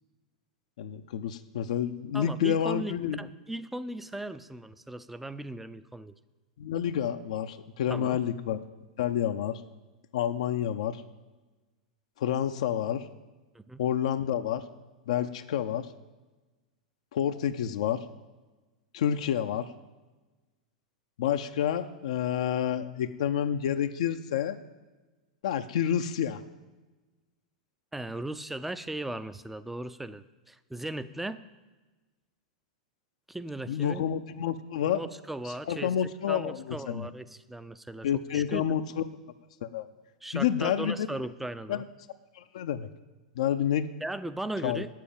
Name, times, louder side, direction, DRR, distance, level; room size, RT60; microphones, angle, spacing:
voice 1, 0.8-3.2 6.6-8.6 9.0-9.6 10.1-11.0 12.2-13.1 13.8-14.6 15.1-15.9 17.1-18.0 18.9-19.7 21.2-24.6 25.4-26.4 33.7-35.0 35.4-37.1 38.0-39.1 39.6-39.9 40.3-40.9 41.7-41.8 42.4-42.9 43.4-43.9 44.6-44.8, left 9 dB, 60° left, 8 dB, 0.5 m, -29 dB
voice 2, 2.1-6.2 7.9-8.2 13.5-13.8 27.9-31.4 33.3-34.1 34.9-35.9 36.3-38.7 40.2-41.8 44.0-44.9, right 1 dB, 5° right, 13 dB, 0.5 m, -37 dB
8.3 x 7.5 x 8.9 m, 1.2 s
figure-of-eight pair, 95°, 4 cm